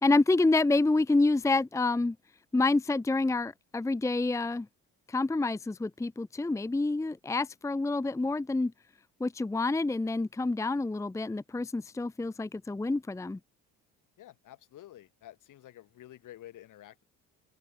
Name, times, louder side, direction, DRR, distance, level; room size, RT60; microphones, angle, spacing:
voice 1, 0.0-2.2 2.5-4.7 5.1-8.7 9.2-13.4, left 2 dB, 10° left, 0.7 m, -28 dB
voice 2, 14.2-17.0, left 13 dB, 65° left, 7.3 m, -50 dB
open air
supercardioid pair, 85°, 33 cm